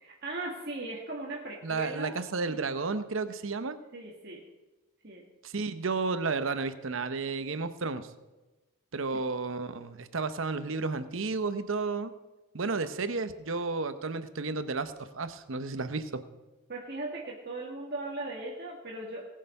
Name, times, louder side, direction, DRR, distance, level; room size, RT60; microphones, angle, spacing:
voice 1, 0.0-2.1 2.5-2.6 3.9-4.4 5.0-5.3 16.7-19.2, right 2 dB, 50° right, -3 dB, 1.6 m, -38 dB
voice 2, 1.6-3.8 5.4-8.1 8.9-12.1 12.5-16.2, right 4 dB, 70° right, 11 dB, 0.8 m, -32 dB
19.0 x 6.6 x 5.4 m, 1.1 s
head